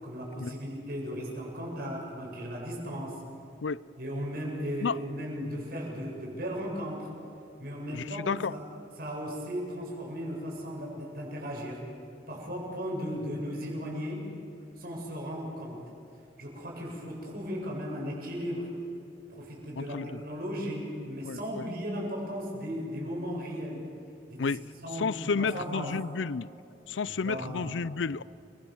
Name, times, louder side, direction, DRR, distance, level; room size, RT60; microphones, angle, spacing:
voice 1, 0.0-3.2 4.0-7.1 7.6-8.6 9.0-11.8 12.3-14.3 14.8-15.8 16.4-18.7 19.3-23.9 24.3-24.5 24.8-25.9 27.1-27.9, equal, 55° right, 7.3 m, -36 dB
voice 2, 7.9-8.5 19.8-20.2 21.3-21.6 24.4-24.6 24.9-26.5 26.9-28.2, left 5 dB, 80° left, 0.5 m, -31 dB
29.5 x 23.5 x 7.3 m
head